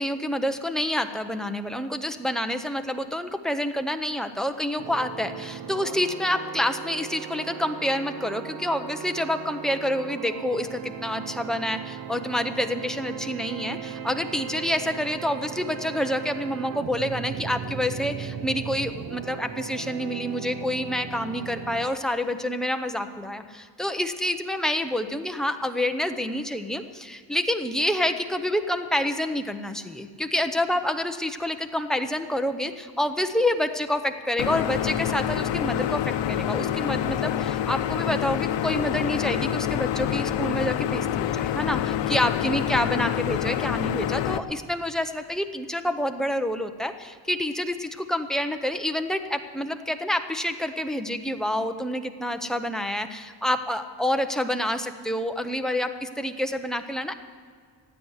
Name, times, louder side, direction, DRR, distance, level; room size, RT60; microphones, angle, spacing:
voice 1, 0.0-57.1, left 1 dB, ahead, 6 dB, 0.6 m, -28 dB
sound 1, 4.8-21.9, right 8 dB, 55° right, 0.7 m, -37 dB
sound 2, 34.4-44.4, left 10 dB, 80° left, 0.7 m, -27 dB
15.5 x 9.3 x 8.0 m, 2.1 s
cardioid pair, 150°, 43 cm